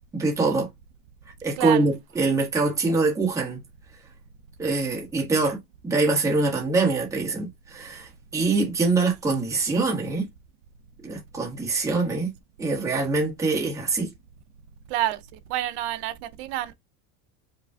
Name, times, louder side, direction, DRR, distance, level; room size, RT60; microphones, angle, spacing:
voice 1, 0.1-0.7 1.4-3.6 4.6-5.6 5.8-10.3 11.0-12.3 12.6-14.1, right 3 dB, 5° right, 1.1 m, -24 dB
voice 2, 14.9-15.2 15.5-16.7, right 14 dB, 45° right, 0.5 m, -28 dB
5.1 x 2.4 x 3.4 m
supercardioid pair, 170°, 45 cm